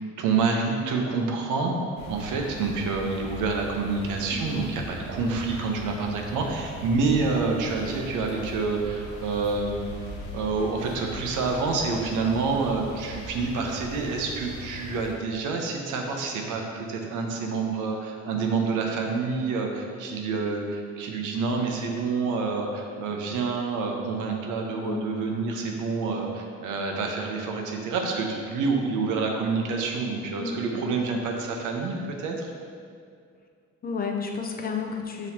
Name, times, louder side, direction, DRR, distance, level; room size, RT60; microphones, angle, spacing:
voice 1, 0.2-1.7 2.1-9.9 10.3-32.5, right 4 dB, 85° right, 1 dB, 0.7 m, -28 dB
sound 1, 2.0-15.1, left 1 dB, 70° left, 0.9 m, -39 dB
voice 2, 24.7-25.1 30.4-30.7 33.8-35.3, left 5 dB, 30° left, 2 dB, 0.5 m, -32 dB
5.8 x 3.0 x 2.7 m, 2.2 s
cardioid pair, 90°, 30 cm